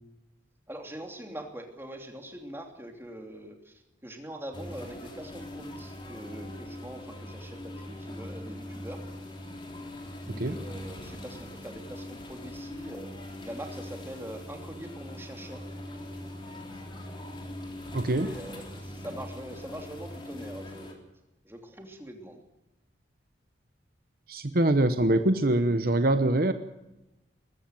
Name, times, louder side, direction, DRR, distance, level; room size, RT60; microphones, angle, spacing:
voice 1, 0.7-9.0 10.3-13.1 13.4-15.6 18.2-21.0 21.4-22.4, right 1 dB, 10° right, 4 dB, 3.0 m, -43 dB
sound 1, 4.5-20.9, left 1 dB, 25° left, 3.6 m, -41 dB
voice 2, 17.9-18.3 24.3-26.5, right 1 dB, 50° right, 10 dB, 1.0 m, -24 dB
21.5 x 14.5 x 9.1 m, 1.0 s
head